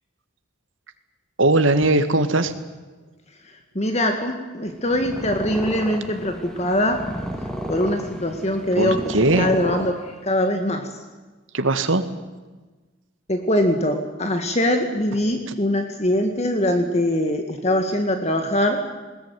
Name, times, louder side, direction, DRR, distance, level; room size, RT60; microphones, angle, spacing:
voice 1, 1.4-2.5 8.8-9.5 11.5-12.0, right 2 dB, 85° right, 9 dB, 2.0 m, -19 dB
voice 2, 3.8-7.0 7.7-10.9 13.3-18.8, left 1 dB, 35° left, 5 dB, 1.9 m, -22 dB
Purr, 4.7-10.4, equal, 5° left, 2.3 m, -32 dB
20.5 x 20.5 x 9.5 m, 1.3 s
head